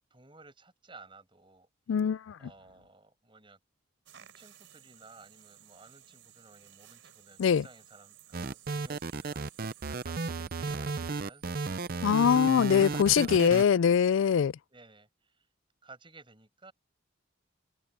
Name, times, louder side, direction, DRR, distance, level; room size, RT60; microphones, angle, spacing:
voice 1, 0.1-1.7 2.4-3.6 4.1-11.9 12.6-13.7 14.1-14.3 14.7-15.5 15.8-16.7, right 3 dB, 25° right, 6.6 m, -56 dB
voice 2, 1.9-2.4 7.4-7.6 12.0-14.5, left 7 dB, 75° left, 0.4 m, -23 dB
sound 1, 4.0-10.1, right 10 dB, 65° right, 4.4 m, -57 dB
sound 2, 8.3-13.6, right 4 dB, 45° right, 0.6 m, -34 dB
head